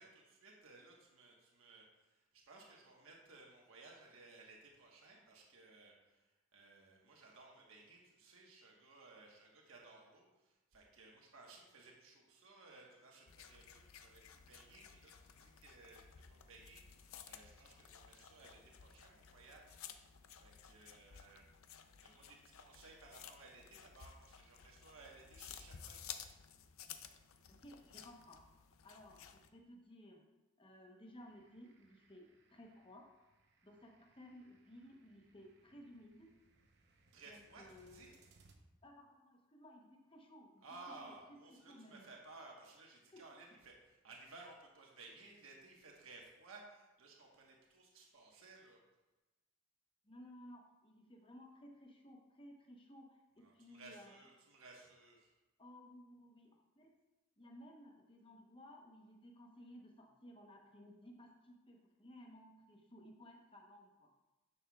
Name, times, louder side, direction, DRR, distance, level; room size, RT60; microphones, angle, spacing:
voice 1, 0.0-21.4 22.0-26.0 37.1-38.1 40.6-48.8 53.4-55.3, right 3 dB, 75° right, -1 dB, 1.2 m, -59 dB
sound 1, 13.3-29.5, left 8 dB, 80° left, 0.5 m, -55 dB
voice 2, 27.5-28.4 28.8-30.2 30.6-32.2 32.5-33.1 33.6-36.3 37.3-38.2 38.8-40.6 41.0-41.1 41.7-42.0 43.1-43.2 50.0-54.2 55.6-56.9 57.4-64.1, left 1 dB, 25° left, 1 dB, 0.9 m, -58 dB
sound 2, 31.2-38.6, right 3 dB, 50° right, 0.8 m, -71 dB
9.8 x 6.7 x 2.3 m, 1.1 s
head